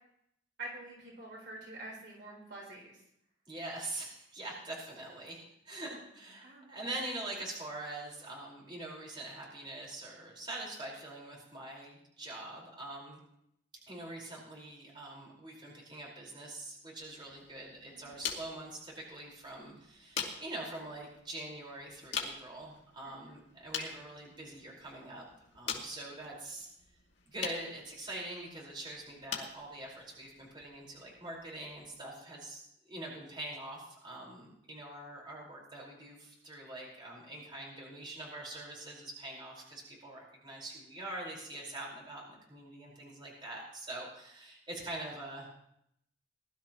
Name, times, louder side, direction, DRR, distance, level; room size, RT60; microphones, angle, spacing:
voice 1, 0.6-3.0 6.4-6.8 17.9-18.2 23.0-23.3, right 2 dB, 65° right, -2 dB, 4.2 m, -47 dB
voice 2, 3.5-5.4 5.6-13.2 13.9-25.2 25.5-26.7 27.2-45.5, right 2 dB, 25° right, -3 dB, 4.8 m, -44 dB
sound 1, 17.0-32.0, left 6 dB, 70° left, 2.3 m, -45 dB
20.5 x 12.5 x 3.1 m, 0.75 s
head